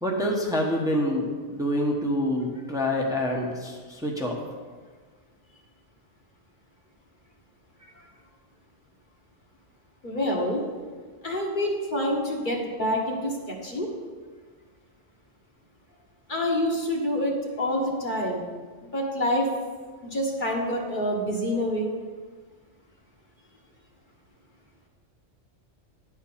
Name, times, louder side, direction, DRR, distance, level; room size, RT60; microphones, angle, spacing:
voice 1, 0.0-4.4, left 1 dB, 5° right, -1 dB, 1.1 m, -26 dB
voice 2, 10.0-10.6 11.2-13.9 16.3-18.4 18.9-19.5 20.1-21.9, equal, 40° left, -1 dB, 1.6 m, -27 dB
10.5 x 4.6 x 7.3 m, 1.5 s
omnidirectional pair, 1.2 m